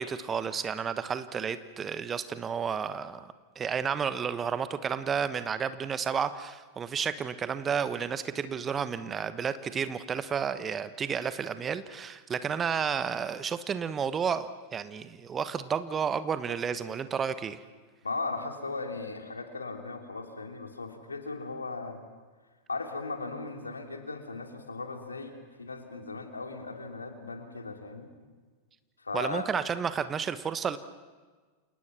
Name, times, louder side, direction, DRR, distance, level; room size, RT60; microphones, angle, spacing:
voice 1, 0.0-17.6 29.1-30.8, right 7 dB, 20° right, 12 dB, 1.2 m, -31 dB
voice 2, 18.0-22.0 22.7-28.1 29.0-29.5, left 3 dB, 80° left, 4 dB, 2.9 m, -37 dB
29.5 x 27.5 x 6.1 m, 1.4 s
figure-of-eight pair, 90°, 0 cm